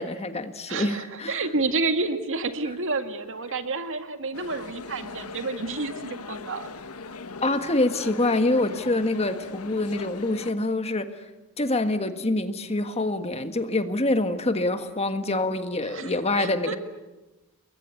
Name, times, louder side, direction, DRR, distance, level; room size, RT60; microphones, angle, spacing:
voice 1, 0.0-1.4 7.4-11.1 11.6-16.8, left 2 dB, 30° left, 8 dB, 1.6 m, -26 dB
voice 2, 0.7-6.7 15.8-16.8, right 3 dB, 60° right, 7 dB, 2.0 m, -30 dB
sound 1, 4.3-10.5, left 4 dB, 80° left, 1.2 m, -40 dB
29.5 x 22.0 x 8.5 m, 1.1 s
head